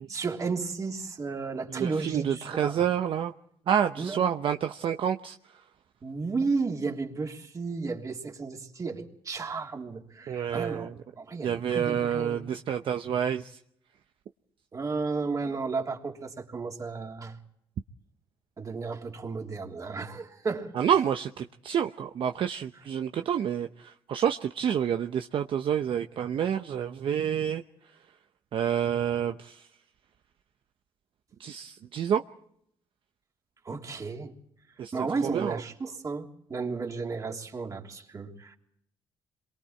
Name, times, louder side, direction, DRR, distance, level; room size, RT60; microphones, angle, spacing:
voice 1, 0.1-2.9 4.0-4.2 6.0-10.9 11.2-12.5 14.7-17.4 18.6-20.7 22.7-22.8 33.6-34.4 34.9-38.6, right 4 dB, 35° right, 3.2 m, -33 dB
voice 2, 1.7-3.3 3.7-5.4 10.3-10.9 11.4-13.5 20.8-27.6 28.5-29.5 31.4-32.2 34.8-34.9 35.2-35.6, right 8 dB, 60° right, 0.8 m, -28 dB
27.5 x 23.0 x 4.5 m
cardioid pair, 100°, 10 cm